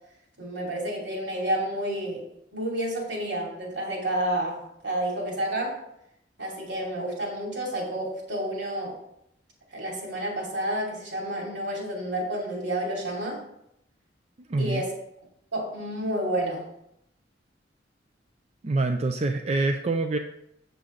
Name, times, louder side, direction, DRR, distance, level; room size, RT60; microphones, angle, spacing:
voice 1, 0.4-2.2 2.5-5.8 6.4-8.9 9.7-13.4 14.6-14.9 15.5-16.6, right 1 dB, 75° right, -2 dB, 2.9 m, -30 dB
voice 2, 14.5-14.8 18.6-20.2, right 3 dB, 35° right, 5 dB, 0.4 m, -25 dB
7.6 x 6.9 x 3.8 m, 0.78 s
head